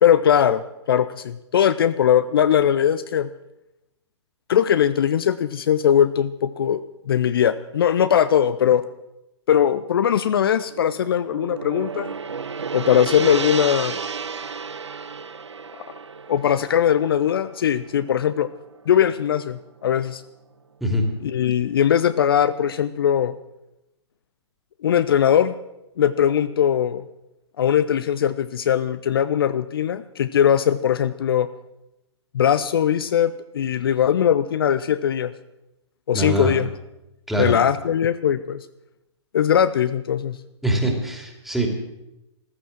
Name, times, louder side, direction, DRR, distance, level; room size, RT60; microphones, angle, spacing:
voice 1, 0.0-0.6 0.9-3.3 4.5-8.8 9.5-12.1 12.7-14.0 16.3-18.5 18.9-20.2 21.2-23.3 24.8-25.5 26.0-27.0 27.6-31.5 32.3-35.3 36.1-36.7 37.4-38.6 39.3-40.4, left 9 dB, 50° left, 13 dB, 0.6 m, -20 dB
Gong, 10.7-19.0, right 5 dB, 70° right, 0.8 m, -32 dB
voice 2, 36.1-36.5 37.3-37.5 40.6-41.7, right 1 dB, ahead, 2 dB, 2.6 m, -23 dB
14.5 x 13.5 x 7.5 m, 0.93 s
figure-of-eight pair, 120°, 15 cm